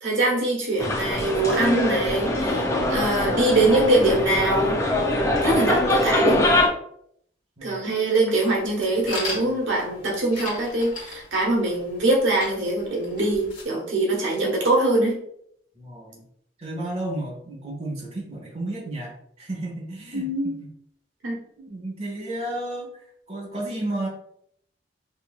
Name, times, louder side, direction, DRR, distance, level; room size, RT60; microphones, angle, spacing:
voice 1, 0.0-4.8 5.4-6.4 7.6-15.2 20.1-20.6 21.2-21.4, right 2 dB, 85° right, -2 dB, 1.2 m, -23 dB
sound 1, 0.8-6.7, left 1 dB, 15° left, 0.5 m, -23 dB
voice 2, 7.6-7.9 15.7-16.2 16.6-20.7 21.6-22.9 23.3-24.1, right 1 dB, 35° right, -4 dB, 1.2 m, -33 dB
sound 2, 8.4-13.6, left 3 dB, 45° left, 1.3 m, -38 dB
5.3 x 2.7 x 2.4 m, 0.69 s
head